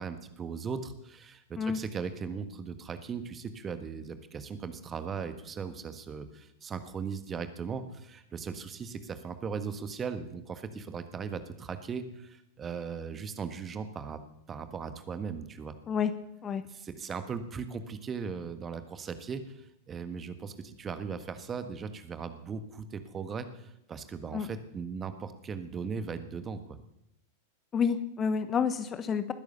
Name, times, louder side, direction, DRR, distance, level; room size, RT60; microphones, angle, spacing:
voice 1, 0.0-14.2 14.5-15.8 16.7-26.8, right 6 dB, 20° right, 10 dB, 1.6 m, -38 dB
voice 2, 27.7-29.3, left 6 dB, 25° left, 12 dB, 1.0 m, -29 dB
20.0 x 10.5 x 6.9 m, 0.83 s
figure-of-eight pair, 90°, 0 cm